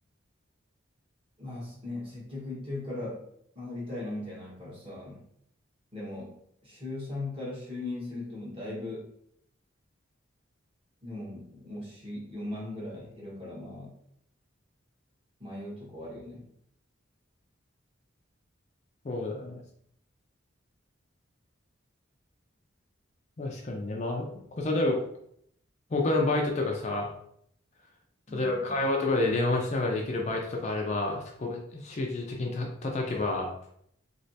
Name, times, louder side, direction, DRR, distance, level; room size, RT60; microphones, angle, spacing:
voice 1, 1.4-3.2 3.5-5.2 5.9-6.3 6.6-9.1 11.0-13.9 15.4-16.5 28.3-28.9, left 2 dB, 25° right, -6 dB, 1.3 m, -38 dB
voice 2, 19.0-19.6 23.4-25.0 25.9-27.1 28.3-33.5, left 2 dB, 35° left, 0 dB, 0.4 m, -29 dB
3.2 x 3.0 x 2.7 m, 0.70 s
head